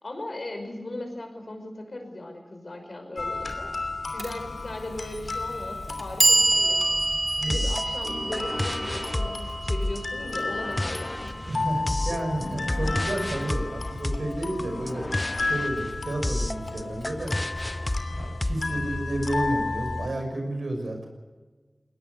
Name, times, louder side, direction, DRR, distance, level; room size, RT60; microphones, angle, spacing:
voice 1, 0.0-3.7 4.1-7.0 7.4-11.3 12.1-12.3 18.6-19.0, left 1 dB, 60° left, 5 dB, 5.6 m, -38 dB
sound 1, 3.2-20.1, left 3 dB, 80° left, 2.8 m, -33 dB
Clock, 4.2-4.3 5.3-5.4 5.9-11.9, right 2 dB, 60° right, 2.4 m, -27 dB
sound 2, 7.5-19.3, left 1 dB, 25° left, 0.8 m, -31 dB
voice 2, 11.5-15.1 15.3-17.3 18.2-21.1, right 1 dB, 80° right, 3 dB, 6.2 m, -31 dB
21.5 x 19.0 x 8.2 m, 1.3 s
wide cardioid pair, 50°, 0 cm